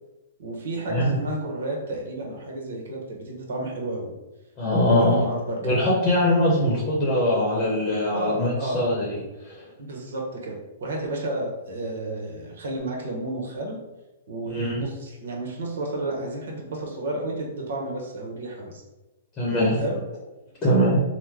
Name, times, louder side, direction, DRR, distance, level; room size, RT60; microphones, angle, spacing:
voice 1, 0.4-4.1 4.9-5.8 8.1-8.8 9.8-13.8 14.3-18.8 19.8-20.0, right 2 dB, 75° right, 0 dB, 1.0 m, -31 dB
voice 2, 4.6-5.2 5.6-9.6 14.5-14.8 19.4-19.8 20.6-21.0, left 1 dB, 20° left, -5 dB, 0.9 m, -22 dB
3.0 x 2.2 x 3.5 m, 1.0 s
hypercardioid pair, 150°, 0 cm